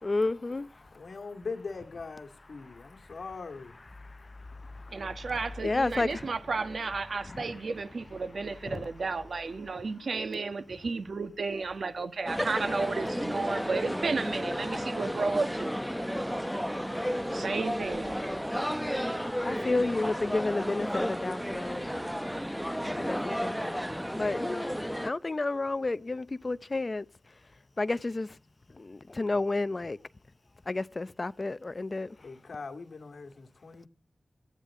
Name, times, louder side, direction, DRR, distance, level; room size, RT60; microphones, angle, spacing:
voice 1, 0.0-0.7 4.6-4.9 5.6-6.3 7.3-7.4 8.7-8.8 19.4-21.9 23.0-23.8 24.2-24.7 25.0-27.1 27.8-28.3 28.8-30.0 30.7-32.2, left 2 dB, 40° left, 0.6 m, -31 dB
voice 2, 0.9-3.8 32.2-33.9, left 4 dB, 70° left, 2.3 m, -41 dB
voice 3, 4.9-15.7 17.3-18.2, right 4 dB, 70° right, 1.4 m, -33 dB
sound 1, 12.3-25.1, equal, ahead, 0.8 m, -33 dB
17.5 x 14.5 x 3.8 m
wide cardioid pair, 85°, 0 cm